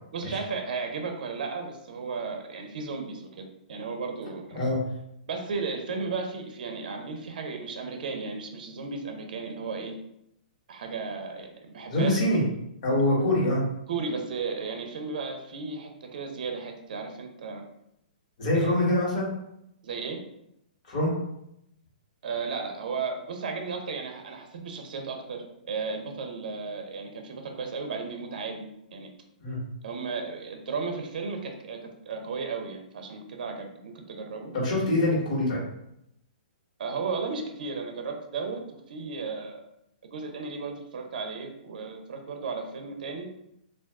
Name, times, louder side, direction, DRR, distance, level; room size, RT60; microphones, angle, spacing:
voice 1, 0.1-4.6 5.3-10.0 10.7-12.3 13.9-17.6 18.5-18.7 19.8-20.2 22.2-29.1 29.8-31.8 32.1-34.5 36.8-39.6 40.1-43.3, right 4 dB, 65° right, 3 dB, 0.6 m, -34 dB
voice 2, 11.9-12.4 12.8-13.6 18.4-19.3 20.9-21.1 29.4-29.6 34.5-35.6, left 1 dB, 45° left, -5 dB, 1.5 m, -24 dB
2.5 x 2.3 x 3.5 m, 0.79 s
hypercardioid pair, 150°, 5 cm